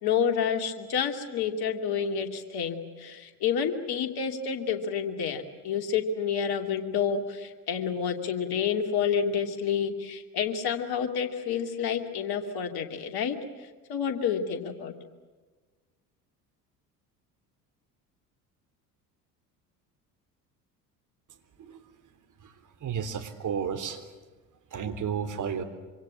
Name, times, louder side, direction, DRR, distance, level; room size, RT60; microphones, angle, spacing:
voice 1, 0.0-14.9, left 7 dB, 50° left, 5 dB, 2.9 m, -29 dB
voice 2, 22.8-24.0 24.7-25.6, right 7 dB, 40° right, 6 dB, 3.5 m, -32 dB
26.0 x 24.5 x 7.5 m, 1.3 s
figure-of-eight pair, 60°, 48 cm